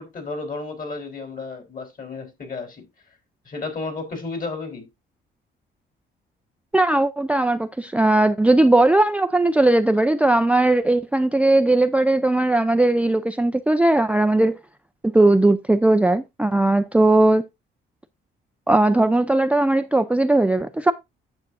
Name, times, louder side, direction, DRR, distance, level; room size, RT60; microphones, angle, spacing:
voice 1, 0.0-2.8 3.4-4.9, left 3 dB, 45° left, 3.9 m, -32 dB
voice 2, 6.7-14.6 15.1-17.4 18.7-20.9, right 2 dB, 5° right, 0.5 m, -18 dB
9.2 x 7.1 x 2.6 m
cardioid pair, 90°, 20 cm